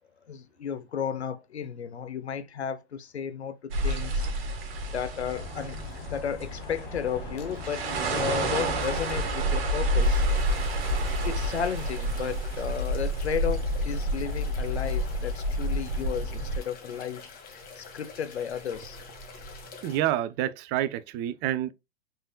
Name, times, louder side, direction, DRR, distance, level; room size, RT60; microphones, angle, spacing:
voice 1, 0.3-4.3 4.9-5.8 6.1-10.2 11.1-17.3 17.8-19.0, left 7 dB, 90° left, 0.7 m, -33 dB
sound 1, 3.7-16.6, right 1 dB, 65° right, 1.6 m, -29 dB
Bird, 5.3-11.5, left 7 dB, 60° left, 1.2 m, -41 dB
sound 2, 10.0-20.0, left 4 dB, 30° left, 1.7 m, -46 dB
voice 2, 19.8-21.7, right 12 dB, 35° right, 0.5 m, -28 dB
5.4 x 3.9 x 2.2 m
figure-of-eight pair, 95°, 32 cm